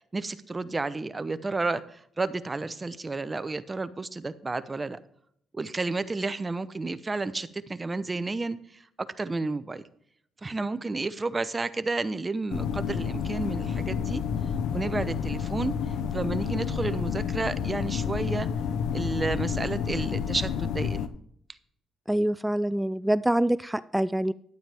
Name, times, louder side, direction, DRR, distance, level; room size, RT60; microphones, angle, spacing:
voice 1, 0.1-5.0 5.5-9.8 10.4-14.2 14.7-15.7 16.1-18.5 18.9-21.1, right 3 dB, 25° right, 13 dB, 0.7 m, -31 dB
sound 1, 12.5-21.1, left 7 dB, 85° left, 0.7 m, -30 dB
voice 2, 22.1-24.3, right 1 dB, 5° right, 16 dB, 0.3 m, -25 dB
11.5 x 9.2 x 3.5 m, 0.68 s
cardioid pair, 90°, 0 cm